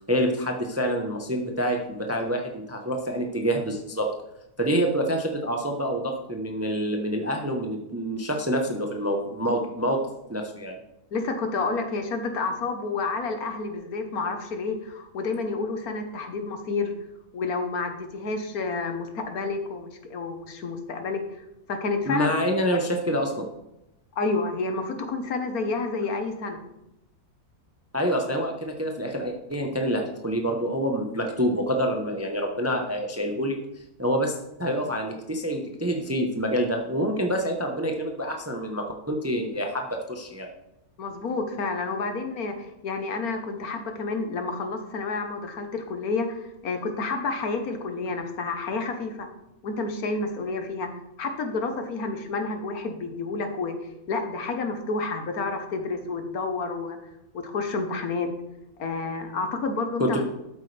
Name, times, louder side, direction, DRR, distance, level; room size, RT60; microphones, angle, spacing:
voice 1, 0.0-4.1 4.6-10.0 10.3-10.8 22.0-23.5 27.9-33.5 34.0-40.5 60.0-60.2, equal, 15° right, 3 dB, 0.7 m, -27 dB
voice 2, 11.1-16.9 17.3-21.2 21.7-22.3 22.7-22.8 24.1-26.6 41.0-49.3 49.6-50.9 51.2-53.8 54.1-57.0 57.3-58.3 58.8-60.2, left 3 dB, 70° left, 6 dB, 1.6 m, -29 dB
12.5 x 8.2 x 3.4 m, 0.89 s
omnidirectional pair, 1.7 m